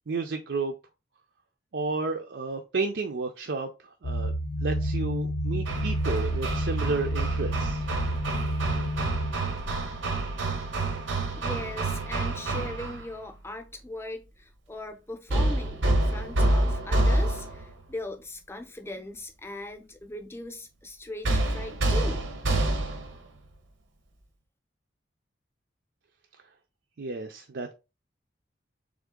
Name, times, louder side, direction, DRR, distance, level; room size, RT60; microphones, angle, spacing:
voice 1, 0.1-0.7 1.7-3.7 4.0-4.3 4.6-7.8 27.0-27.7, right 3 dB, 65° right, 0.5 m, -31 dB
sound 1, 4.0-9.3, equal, 75° left, 0.5 m, -29 dB
Hammer, 5.7-13.1 15.3-17.7 21.2-23.2, right 2 dB, 85° right, 0.8 m, -28 dB
voice 2, 11.4-22.2, left 1 dB, 15° left, 0.6 m, -39 dB
3.7 x 3.6 x 3.6 m
head